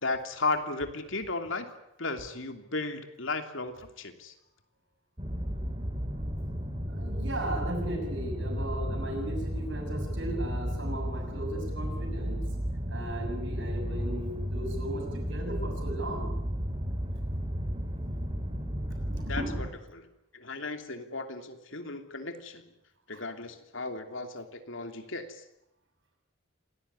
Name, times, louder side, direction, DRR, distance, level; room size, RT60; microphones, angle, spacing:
voice 1, 0.0-1.7 2.0-4.3 19.3-19.7 19.9-20.1 20.3-22.6 23.1-25.4, left 3 dB, 65° left, 6 dB, 3.0 m, -35 dB
sound 1, 5.2-19.7, equal, 25° right, 3.3 m, -33 dB
voice 2, 6.9-12.4 12.9-16.3 19.1-19.6 23.1-23.2, right 1 dB, 60° right, 3 dB, 6.8 m, -37 dB
27.5 x 19.0 x 9.8 m, 0.82 s
head